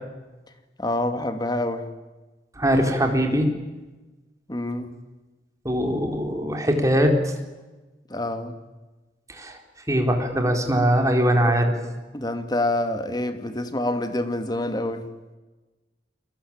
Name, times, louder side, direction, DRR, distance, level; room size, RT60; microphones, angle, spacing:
voice 1, 0.8-1.9 4.5-4.9 8.1-8.6 12.1-15.1, left 1 dB, 25° left, 8 dB, 2.4 m, -27 dB
voice 2, 2.6-3.5 5.6-7.3 9.3-9.6 9.9-11.7, equal, 20° right, 4 dB, 4.2 m, -21 dB
29.0 x 22.0 x 8.9 m, 1.2 s
head